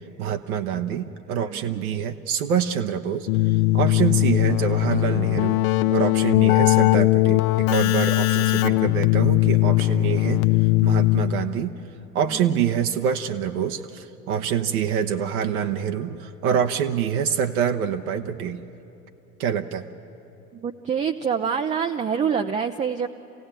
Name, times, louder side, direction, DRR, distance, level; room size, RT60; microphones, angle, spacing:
voice 1, 0.2-10.4 10.8-11.8 12.1-18.6 19.4-19.8, right 8 dB, 65° right, 6 dB, 1.0 m, -26 dB
Keyboard (musical), 3.3-11.6, left 19 dB, 65° left, 0.8 m, -20 dB
voice 2, 20.5-23.1, right 7 dB, 15° right, 6 dB, 0.5 m, -26 dB
27.0 x 16.5 x 8.9 m, 3.0 s
figure-of-eight pair, 80°, 47 cm